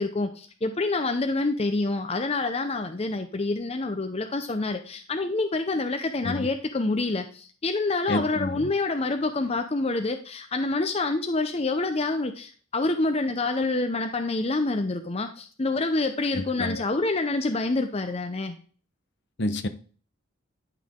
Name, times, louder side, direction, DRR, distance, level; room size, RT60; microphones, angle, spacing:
voice 1, 0.0-18.6, left 3 dB, 30° left, 0.6 m, -27 dB
voice 2, 8.1-8.7 16.3-16.8 19.4-19.7, left 1 dB, 55° left, 0.8 m, -29 dB
10.5 x 5.8 x 3.7 m
head